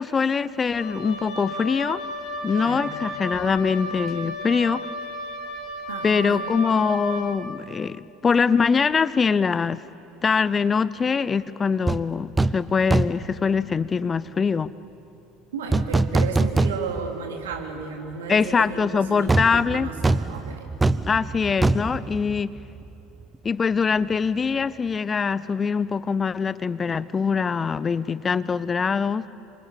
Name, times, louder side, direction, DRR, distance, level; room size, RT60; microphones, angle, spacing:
voice 1, 0.0-2.0 2.4-4.9 6.0-9.8 10.2-14.7 18.3-19.9 21.0-22.6 23.4-29.3, left 5 dB, 25° left, 18 dB, 0.6 m, -23 dB
Wind instrument woodwind instrument, 0.7-7.4, left 1 dB, 45° left, 4.1 m, -33 dB
voice 2, 2.4-3.0 5.9-6.5 15.5-20.7, right 5 dB, 70° right, 3 dB, 3.3 m, -34 dB
sound 1, 11.9-12.0 12.4-12.6 12.9-13.3 15.7-17.1 17.5-17.6 19.3-22.9 23.2-23.4, right 2 dB, 15° right, 0.8 m, -23 dB
27.0 x 25.0 x 8.7 m, 2.9 s
figure-of-eight pair, 70°, 0 cm